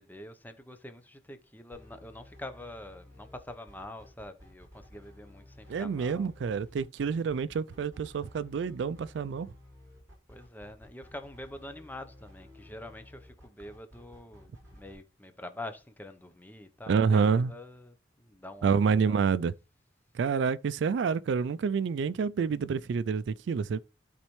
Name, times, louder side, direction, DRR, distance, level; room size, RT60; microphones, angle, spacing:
voice 1, 0.0-6.3 10.3-17.2 17.4-19.2, left 1 dB, 10° left, 0.8 m, -45 dB
sound 1, 1.7-15.0, left 1 dB, 20° right, 5.0 m, -54 dB
voice 2, 5.7-9.5 16.9-17.5 18.6-19.5 20.1-23.8, right 6 dB, 70° right, 0.3 m, -28 dB
12.0 x 4.1 x 3.1 m
head